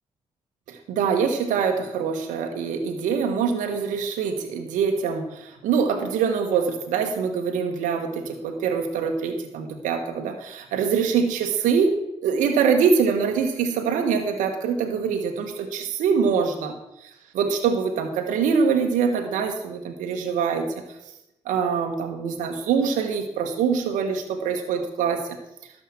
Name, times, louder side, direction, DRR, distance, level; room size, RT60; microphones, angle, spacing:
voice 1, 0.7-16.7 17.3-20.7 21.4-25.4, right 6 dB, 75° right, 5 dB, 1.3 m, -24 dB
12.5 x 5.2 x 7.7 m, 0.85 s
hypercardioid pair, 40°, 13 cm